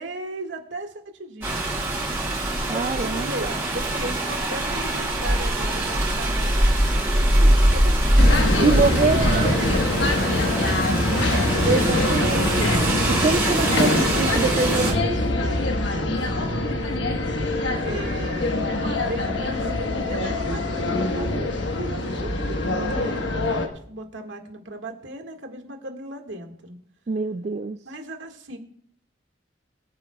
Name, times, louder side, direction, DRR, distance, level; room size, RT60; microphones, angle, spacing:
voice 1, 0.0-1.8 2.9-7.9 8.3-11.5 13.6-14.3 14.8-15.1 15.4-17.5 17.8-26.8 27.8-28.6, right 1 dB, 80° right, 3 dB, 1.8 m, -37 dB
Rain, 1.4-14.9, right 1 dB, 15° right, 5.2 m, -23 dB
voice 2, 2.7-3.6 8.6-9.5 11.7-12.7 13.1-15.0 22.7-22.9 27.1-27.8, right 4 dB, 35° right, 9 dB, 0.3 m, -25 dB
sound 1, 8.2-23.7, left 2 dB, 75° left, 1.3 m, -24 dB
22.5 x 9.0 x 2.3 m, 0.64 s
head